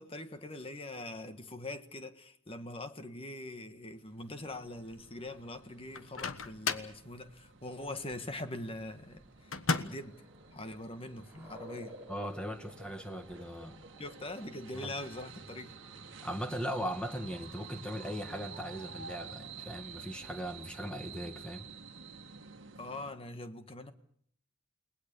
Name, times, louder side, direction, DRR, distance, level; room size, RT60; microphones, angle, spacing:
voice 1, 0.0-10.2 10.5-12.0 14.0-15.7 22.8-23.9, left 2 dB, 25° left, 1.5 m, -43 dB
sound 1, 3.9-23.1, right 5 dB, 60° right, 1.6 m, -51 dB
Microwave oven, 5.9-7.0 9.5-10.1, left 4 dB, 75° left, 1.3 m, -34 dB
sound 2, 9.0-20.2, equal, 10° right, 4.2 m, -56 dB
voice 2, 12.1-13.8 14.7-15.0 16.2-21.7, equal, 5° left, 1.9 m, -39 dB
30.0 x 19.5 x 6.9 m
head